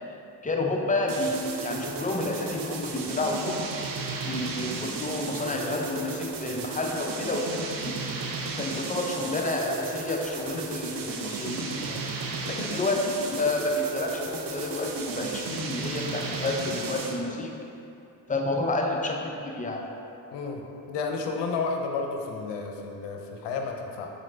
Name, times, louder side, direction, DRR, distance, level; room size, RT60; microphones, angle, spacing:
voice 1, 0.4-1.4 1.6-3.6 4.2-7.9 8.5-17.6 18.3-19.8, left 2 dB, 20° left, 1 dB, 0.5 m, -30 dB
sound 1, 1.1-17.3, right 4 dB, 50° right, 0.6 m, -34 dB
voice 2, 20.3-20.6 20.9-24.1, left 4 dB, 70° left, 2 dB, 0.7 m, -31 dB
4.0 x 3.1 x 3.8 m, 2.8 s
supercardioid pair, 60°, 44 cm